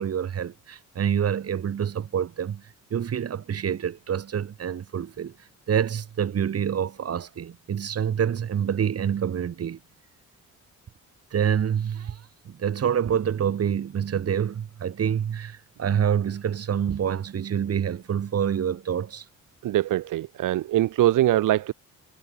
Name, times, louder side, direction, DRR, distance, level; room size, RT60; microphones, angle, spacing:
voice 1, 0.0-2.6 2.9-5.3 5.7-9.8 11.3-19.2, right 8 dB, 50° right, 2.9 m, -27 dB
voice 2, 19.6-21.7, right 14 dB, 90° right, 1.1 m, -22 dB
cardioid pair, 145°, 31 cm